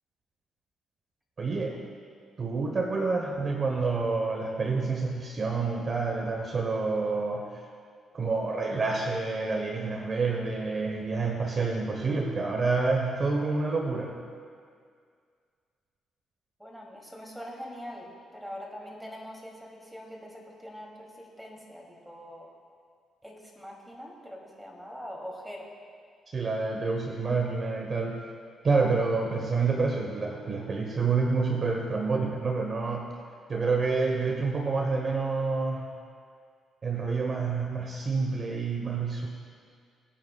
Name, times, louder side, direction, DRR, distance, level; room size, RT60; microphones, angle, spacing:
voice 1, 1.4-1.8 2.4-7.6 8.1-14.2 26.3-28.2 28.6-33.1 33.5-35.9 36.8-39.3, right 4 dB, 40° right, 1 dB, 1.0 m, -28 dB
voice 2, 16.6-22.5 23.2-25.7, equal, 5° right, -2 dB, 2.8 m, -43 dB
22.0 x 9.7 x 2.3 m, 2.1 s
cardioid pair, 90°, 0 cm